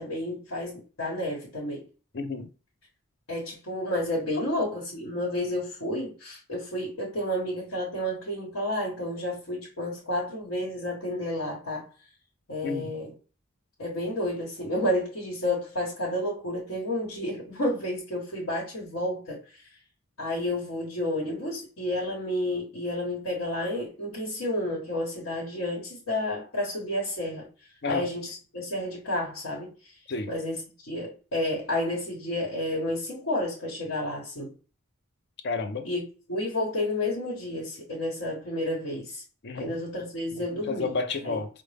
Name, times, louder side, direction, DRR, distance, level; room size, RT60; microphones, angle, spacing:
voice 1, 0.0-1.8 3.3-11.8 12.5-13.1 13.8-19.7 20.2-27.5 27.8-29.9 30.3-34.5 35.8-36.0 36.3-39.2 39.5-40.9 41.2-41.4, left 1 dB, 75° left, 1.3 m, -31 dB
voice 2, 2.1-2.5 12.6-12.9 27.8-28.1 30.1-30.3 35.4-35.9 39.4-39.7 40.5-41.5, left 4 dB, 55° left, 0.6 m, -30 dB
5.1 x 2.1 x 3.3 m
head